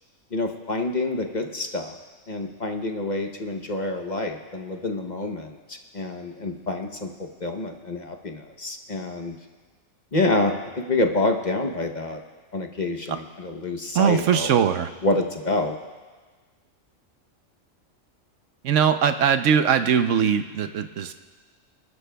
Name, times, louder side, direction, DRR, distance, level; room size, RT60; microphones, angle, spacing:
voice 1, 0.3-2.0 2.3-7.1 7.4-9.4 10.1-12.2 12.5-14.5 15.0-15.8, left 2 dB, 40° left, 4 dB, 0.9 m, -27 dB
voice 2, 13.9-14.9 18.6-21.1, right 8 dB, 75° right, 9 dB, 1.0 m, -21 dB
29.0 x 12.5 x 2.3 m, 1.4 s
omnidirectional pair, 1.3 m